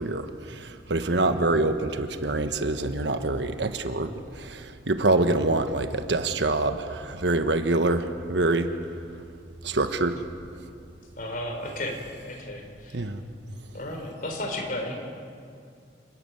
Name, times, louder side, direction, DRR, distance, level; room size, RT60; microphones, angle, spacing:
voice 1, 0.0-8.7 9.6-10.1 12.9-13.2, right 2 dB, 70° right, 8 dB, 1.3 m, -25 dB
voice 2, 11.2-13.1 13.7-15.0, left 1 dB, 45° left, 3 dB, 3.8 m, -34 dB
29.5 x 13.0 x 9.3 m, 2.3 s
head